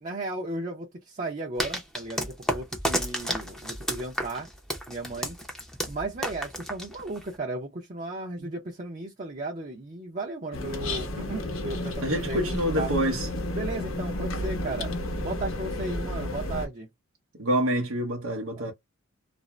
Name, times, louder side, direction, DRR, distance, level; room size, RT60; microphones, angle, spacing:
voice 1, 0.0-4.5 4.9-5.4 5.8-12.4 12.8-12.9 13.5-14.9 15.2-16.9 18.6-18.7, right 2 dB, 35° right, 0.6 m, -35 dB
sound 1, 1.6-7.4, equal, ahead, 0.6 m, -32 dB
sound 2, 10.5-16.7, left 1 dB, 65° left, 0.8 m, -32 dB
voice 2, 12.0-13.3 17.4-18.7, equal, 80° right, 0.7 m, -27 dB
2.5 x 2.0 x 3.1 m
head